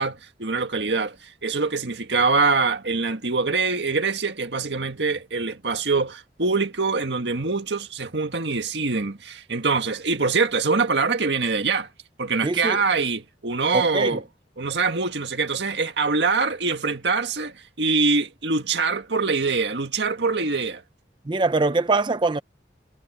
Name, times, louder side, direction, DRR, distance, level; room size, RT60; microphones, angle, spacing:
voice 1, 0.0-11.9 12.2-14.2 14.6-20.8, right 4 dB, 80° right, 1.8 m, -24 dB
voice 2, 12.4-12.8 13.7-14.1 21.3-22.4, right 3 dB, 25° right, 0.5 m, -23 dB
head